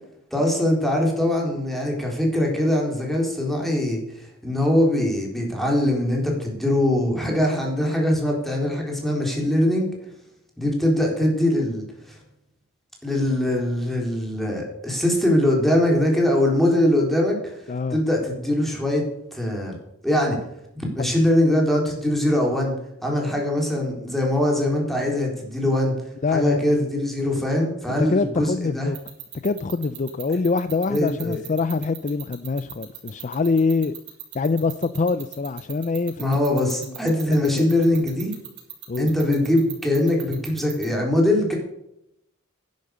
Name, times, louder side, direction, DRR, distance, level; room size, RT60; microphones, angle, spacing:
voice 1, 0.3-9.9 10.6-12.2 13.0-17.6 17.9-19.0 19.3-19.7 20.0-20.4 20.7-22.7 23.0-25.9 26.3-28.9 30.9-31.4 36.2-38.3 39.0-41.5, left 1 dB, ahead, 4.1 m, -22 dB
voice 2, 17.7-18.0 26.2-26.6 27.9-29.0 29.4-33.9 34.3-36.3 36.8-36.9 37.5-37.6 38.9-39.1, left 4 dB, 35° left, 0.5 m, -24 dB
sound 1, 28.9-40.8, right 16 dB, 55° right, 3.9 m, -37 dB
10.5 x 10.5 x 6.6 m
head